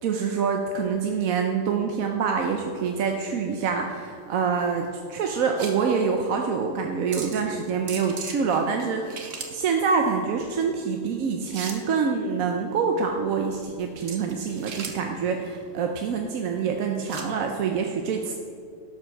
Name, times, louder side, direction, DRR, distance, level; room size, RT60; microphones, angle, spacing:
voice 1, 0.0-18.3, right 5 dB, 85° right, 3 dB, 1.1 m, -26 dB
sound 1, 2.7-17.3, right 5 dB, 65° right, 1.4 m, -41 dB
11.5 x 5.5 x 6.2 m, 2.3 s
omnidirectional pair, 1.4 m